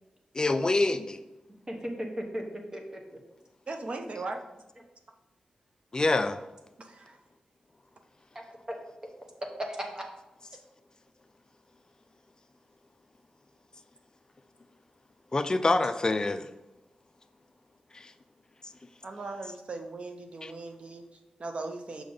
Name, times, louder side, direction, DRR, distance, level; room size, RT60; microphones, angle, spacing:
voice 1, 0.3-1.2 5.9-6.4 15.3-16.5 17.9-18.1 20.4-20.5, left 2 dB, 30° left, 0.5 m, -26 dB
voice 2, 1.7-2.4 2.7-3.2 8.3-8.8 9.0-9.1 9.7-10.0, equal, 25° right, 1.1 m, -37 dB
voice 3, 3.7-4.4 6.8-7.2 19.0-22.0, right 3 dB, 50° right, 0.8 m, -38 dB
6.4 x 5.1 x 4.0 m
wide cardioid pair, 85°, 2 cm